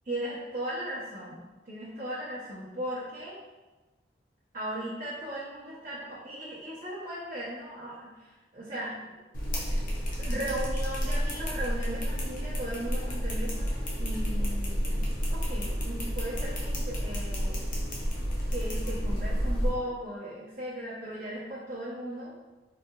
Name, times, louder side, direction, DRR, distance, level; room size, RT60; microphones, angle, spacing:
voice 1, 0.0-3.4 4.5-8.1 8.5-9.1 10.2-17.7 18.5-22.3, right 1 dB, 45° right, -10 dB, 0.8 m, -37 dB
sound 1, 9.3-19.7, equal, 50° left, 0.7 m, -30 dB
4.0 x 2.8 x 2.4 m, 1.2 s
head